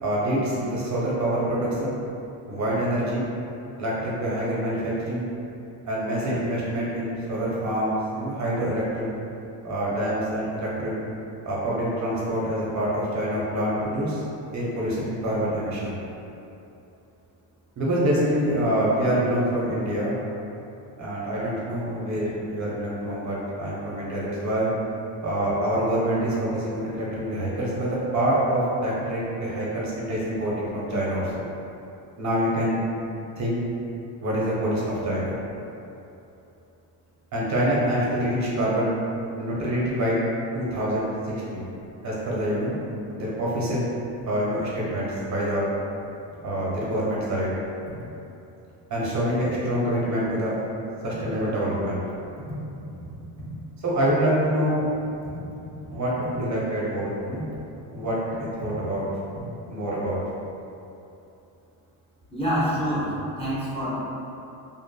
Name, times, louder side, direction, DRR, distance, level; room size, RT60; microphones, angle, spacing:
voice 1, 0.0-2.0 2.5-3.3 3.8-5.3 5.8-9.1 9.6-10.9 11.5-14.2 14.5-16.0 17.8-20.2 21.0-24.7 25.2-31.4 32.2-32.8 33.4-33.6 34.2-35.3 37.3-38.9 39.4-40.2 40.5-41.7 42.0-42.7 43.1-43.9 44.3-45.7 46.4-47.5 48.9-50.6 51.0-52.0 53.8-54.9 55.9-57.5 57.9-59.1 59.7-60.2, right 1 dB, 40° right, -6 dB, 0.6 m, -26 dB
voice 2, 62.3-63.1 63.4-64.0, equal, 15° left, -10 dB, 0.6 m, -26 dB
2.6 x 2.4 x 2.3 m, 2.8 s
cardioid pair, 100°, 46 cm